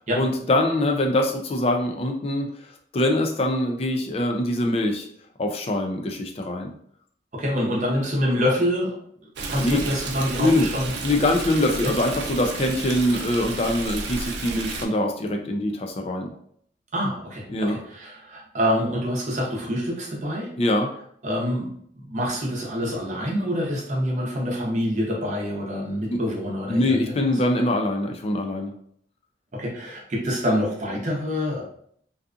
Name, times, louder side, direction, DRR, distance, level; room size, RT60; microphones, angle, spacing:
voice 1, 0.0-2.5 2.9-5.1 5.4-6.7 9.6-9.8 10.4-10.7 11.0-16.3 17.5-17.8 20.6-20.9 26.1-26.2 26.7-28.7, left 1 dB, 35° left, 3 dB, 0.3 m, -23 dB
voice 2, 7.3-9.0 9.5-10.9 11.8-11.9 16.9-20.5 21.2-27.1 29.5-31.6, equal, 40° right, -2 dB, 0.7 m, -26 dB
Stream, 9.4-14.9, right 3 dB, 70° right, 0.4 m, -32 dB
2.6 x 2.4 x 2.4 m, 0.65 s
head